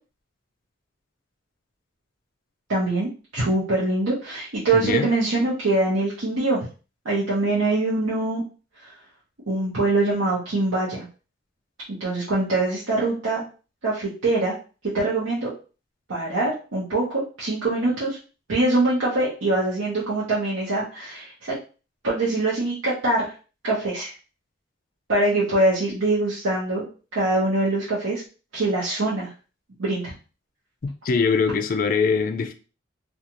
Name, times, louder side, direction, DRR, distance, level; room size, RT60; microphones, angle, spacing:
voice 1, 2.7-6.7 7.0-8.4 8.8-8.9 9.5-11.1 11.9-13.4 13.8-14.5 14.8-15.5 16.1-18.2 18.5-21.6 22.0-23.3 23.6-24.1 25.1-26.8 27.1-28.2 28.5-29.3 29.8-30.1, right 2 dB, 85° right, 0.8 m, -23 dB
voice 2, 4.7-5.1 31.0-32.5, left 5 dB, 45° left, 0.3 m, -22 dB
2.5 x 2.3 x 2.9 m
head